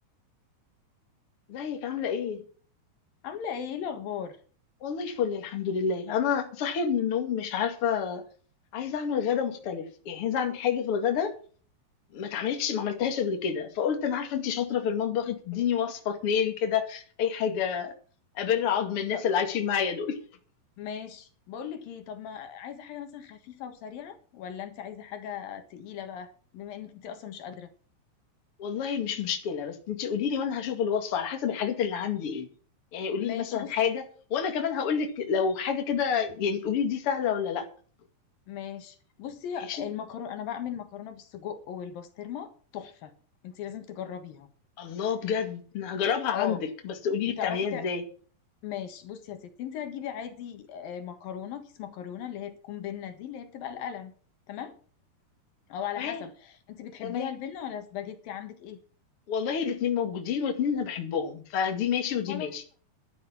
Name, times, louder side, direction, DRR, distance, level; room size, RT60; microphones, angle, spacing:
voice 1, 1.5-2.4 4.8-8.2 8.7-11.4 12.1-17.9 18.3-20.2 28.6-32.5 32.9-34.1 34.3-37.7 39.7-39.8 44.8-48.0 56.0-56.2 57.0-57.3 59.3-62.6, left 7 dB, 45° left, 2.6 m, -28 dB
voice 2, 3.2-4.4 15.5-15.6 19.1-19.2 20.8-27.7 33.2-33.7 38.5-43.1 43.4-44.5 46.3-46.6 47.4-47.9 48.6-54.1 54.5-54.7 55.7-58.8 62.3-62.5, left 9 dB, 75° left, 3.2 m, -38 dB
12.0 x 10.5 x 5.9 m
omnidirectional pair, 4.2 m